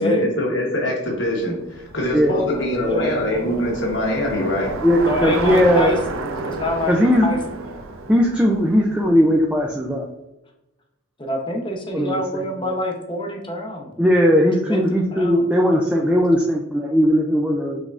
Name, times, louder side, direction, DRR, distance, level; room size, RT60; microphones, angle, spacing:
voice 1, 0.0-4.7, left 1 dB, 65° left, -1 dB, 1.1 m, -23 dB
Bicycle, 1.2-9.6, right 3 dB, 85° right, 0.5 m, -31 dB
voice 2, 2.3-3.9 5.0-6.0 6.4-7.0 7.2-7.4 7.6-8.0 11.2-14.0 14.7-15.8 16.1-16.3, equal, 25° left, 1 dB, 0.7 m, -27 dB
voice 3, 4.8-5.9 6.3-6.5 6.9-7.3 8.1-10.1 11.9-12.4 14.0-17.8, equal, 5° right, -1 dB, 0.3 m, -18 dB
5.2 x 3.6 x 2.4 m, 0.94 s
head